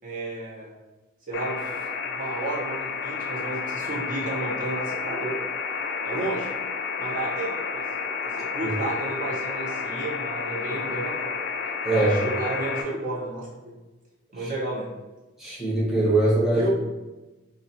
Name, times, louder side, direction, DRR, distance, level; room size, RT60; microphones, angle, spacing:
voice 1, 0.0-0.7 1.3-1.7 2.0-5.4 6.0-6.5 7.0-7.8 8.2-11.3 11.9-13.8 14.3-14.9 16.5-16.7, right 1 dB, 40° right, -5 dB, 0.6 m, -32 dB
sound 1, 1.3-12.8, left 5 dB, 60° left, 0.4 m, -31 dB
voice 2, 11.8-12.2 14.4-14.5 15.4-16.7, right 2 dB, ahead, -6 dB, 0.8 m, -22 dB
4.0 x 2.2 x 2.7 m, 1.1 s
head